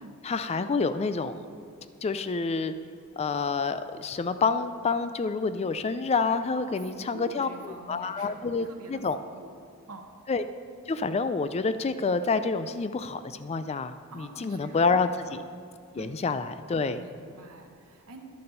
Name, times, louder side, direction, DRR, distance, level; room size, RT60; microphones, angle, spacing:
voice 1, 0.2-1.4 2.0-2.7 3.2-9.2 10.3-10.4 10.9-15.4 15.9-17.0, left 4 dB, 30° left, 11 dB, 0.3 m, -28 dB
voice 2, 6.5-9.5 9.9-10.0 14.1-15.4 16.0-16.2 17.0-18.2, right 2 dB, 75° right, 2 dB, 1.0 m, -46 dB
10.5 x 6.6 x 5.5 m, 2.2 s
head